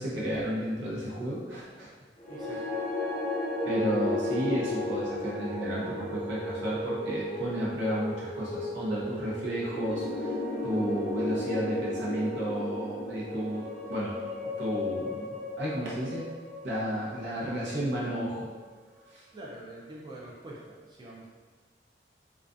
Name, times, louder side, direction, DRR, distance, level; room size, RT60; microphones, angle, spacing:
voice 1, 0.0-1.9 2.5-2.6 3.6-10.3 10.6-16.3 16.6-18.5 19.1-19.2, right 1 dB, 90° right, -6 dB, 0.7 m, -32 dB
sound 1, 2.2-18.5, left 2 dB, 50° left, 0.4 m, -34 dB
voice 2, 2.3-2.6 19.3-20.6 20.9-21.3, right 1 dB, 25° right, -4 dB, 0.3 m, -44 dB
2.4 x 2.3 x 2.5 m, 1.4 s
head